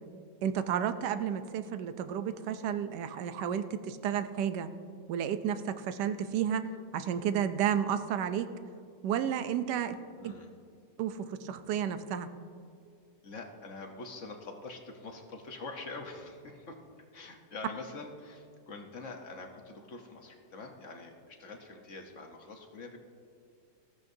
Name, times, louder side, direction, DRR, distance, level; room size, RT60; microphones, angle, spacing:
voice 1, 0.4-4.7 5.1-6.6 6.9-8.5 9.0-10.0 10.2-10.3 11.0-12.3, right 9 dB, 75° right, 10 dB, 1.2 m, -32 dB
voice 2, 10.2-10.5 13.2-16.8 17.1-23.0, left 3 dB, 50° left, 3 dB, 1.2 m, -45 dB
19.5 x 14.0 x 2.7 m, 2.4 s
omnidirectional pair, 1.9 m